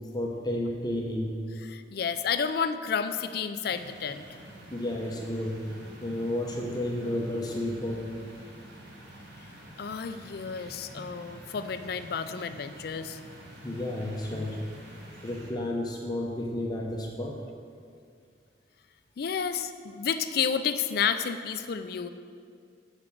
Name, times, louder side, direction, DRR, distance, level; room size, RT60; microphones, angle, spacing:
voice 1, 0.1-1.4 4.7-8.1 10.9-11.1 13.6-14.6 14.9-17.4, left 1 dB, 20° left, 0 dB, 0.7 m, -32 dB
voice 2, 1.6-4.2 9.8-13.2 19.2-22.1, left 7 dB, 55° left, 10 dB, 0.4 m, -31 dB
sound 1, 3.6-15.5, right 1 dB, 65° right, 1.3 m, -48 dB
6.9 x 4.9 x 6.8 m, 2.2 s
head